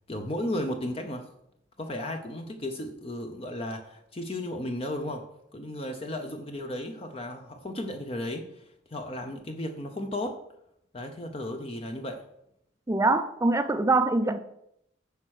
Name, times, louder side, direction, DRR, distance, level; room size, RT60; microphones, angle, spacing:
voice 1, 0.1-1.3 1.8-5.2 5.5-8.6 8.9-10.4 10.9-12.2, left 1 dB, 35° left, 0.7 m, -34 dB
voice 2, 12.9-14.4, right 2 dB, 15° right, 0.4 m, -23 dB
10.5 x 4.4 x 6.4 m
head